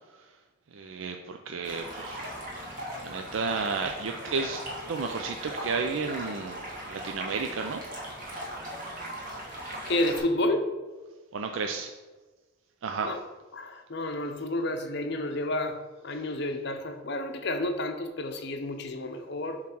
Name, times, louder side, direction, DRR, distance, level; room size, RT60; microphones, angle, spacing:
voice 1, 0.7-2.2 3.0-4.6 4.9-7.8 11.3-11.9 12.8-13.1, right 4 dB, 70° right, 4 dB, 0.4 m, -32 dB
Stream, 1.6-10.2, right 1 dB, 40° right, 1.6 m, -39 dB
voice 2, 9.8-10.7 13.0-13.2 13.5-19.6, left 1 dB, 55° left, 6 dB, 0.7 m, -30 dB
7.0 x 3.2 x 6.0 m, 1.3 s
head